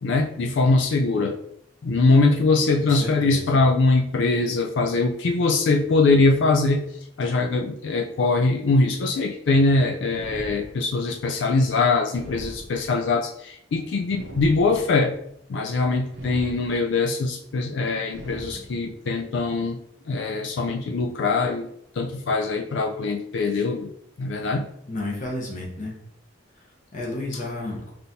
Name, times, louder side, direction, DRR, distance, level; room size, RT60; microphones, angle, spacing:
voice 1, 0.0-1.3 1.8-6.8 7.2-15.1 15.5-19.8 20.1-21.7 22.0-23.9 24.2-24.7, left 3 dB, 65° left, 3 dB, 0.4 m, -22 dB
voice 2, 2.8-3.6 24.9-26.0 26.6-27.9, left 2 dB, 40° left, -2 dB, 0.8 m, -32 dB
sound 1, 10.1-11.1 12.1-13.2 14.1-15.1 16.1-17.1 18.1-19.1, right 1 dB, 70° right, 0.7 m, -40 dB
5.4 x 2.7 x 2.7 m, 0.72 s
head